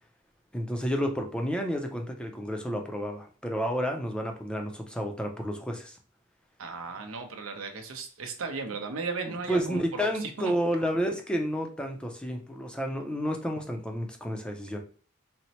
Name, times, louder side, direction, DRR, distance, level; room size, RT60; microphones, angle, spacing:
voice 1, 0.5-6.0 9.3-14.8, equal, 5° left, 3 dB, 0.4 m, -31 dB
voice 2, 6.6-10.5, right 4 dB, 80° right, 5 dB, 0.7 m, -36 dB
4.3 x 2.0 x 2.8 m, 0.42 s
head